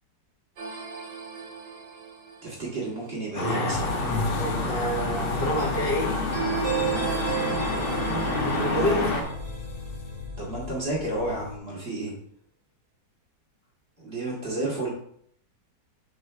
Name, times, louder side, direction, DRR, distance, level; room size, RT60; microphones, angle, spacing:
sound 1, 0.6-2.9 6.0-10.5, right 7 dB, 60° right, 2.6 m, -34 dB
voice 1, 2.4-4.0 8.7-9.0 10.4-12.1 14.0-14.9, right 2 dB, 35° right, -5 dB, 2.7 m, -31 dB
voice 2, 3.4-6.2 8.3-9.0, left 1 dB, 85° left, -2 dB, 2.6 m, -28 dB
sound 2, 3.4-9.2, left 2 dB, 35° left, 1.1 m, -29 dB
sound 3, 3.7-11.6, left 5 dB, 65° left, 0.9 m, -36 dB
6.4 x 6.2 x 3.4 m, 0.65 s
omnidirectional pair, 1.9 m